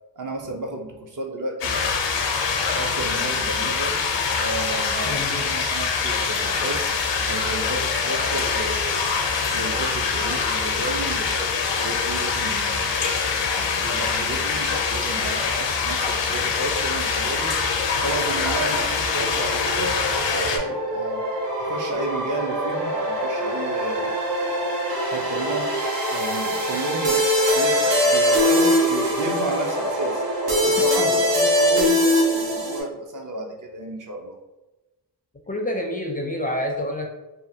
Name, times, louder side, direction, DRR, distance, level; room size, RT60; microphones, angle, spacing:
voice 1, 0.2-1.8 2.7-3.9 4.4-6.9 7.2-9.0 9.5-13.0 13.4-17.6 18.0-20.0 20.3-21.2 21.6-24.1 25.0-25.7 26.1-27.2 27.5-30.2 30.6-34.4, right 2 dB, 45° right, 1 dB, 0.7 m, -32 dB
sound 1, 1.6-20.6, left 5 dB, 80° left, 0.6 m, -24 dB
voice 2, 5.0-5.5 31.0-31.1 35.5-37.1, left 1 dB, 20° left, 1 dB, 0.4 m, -28 dB
sound 2, 16.5-32.8, equal, 80° right, 0.9 m, -23 dB
2.7 x 2.4 x 2.7 m, 1.1 s
cardioid pair, 50°, 42 cm